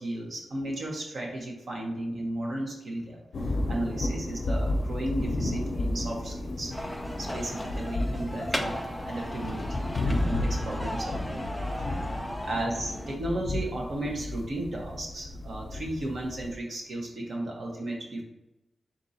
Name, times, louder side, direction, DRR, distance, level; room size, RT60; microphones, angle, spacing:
voice 1, 0.0-3.2 3.5-6.7 7.2-8.8 9.0-11.5 11.8-11.9 12.4-18.2, right 1 dB, 60° right, -1 dB, 1.0 m, -34 dB
sound 1, 3.3-16.5, left 1 dB, 65° left, 0.6 m, -32 dB
sound 2, 6.7-13.2, equal, 5° left, 0.4 m, -36 dB
3.8 x 2.8 x 4.0 m, 0.91 s
wide cardioid pair, 145°, 0 cm